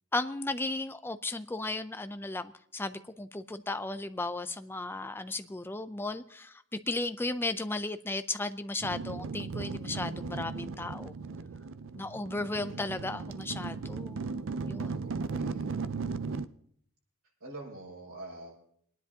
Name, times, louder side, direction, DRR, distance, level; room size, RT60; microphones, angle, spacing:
voice 1, 0.1-11.1 11.9-14.2 14.7-15.0, left 2 dB, 10° left, 11 dB, 0.4 m, -35 dB
sound 1, 8.8-16.5, right 4 dB, 60° right, 0.5 m, -36 dB
voice 2, 12.3-13.3 15.0-15.7 17.4-18.6, right 2 dB, 90° right, -3 dB, 6.3 m, -46 dB
27.0 x 10.0 x 2.8 m, 0.67 s
head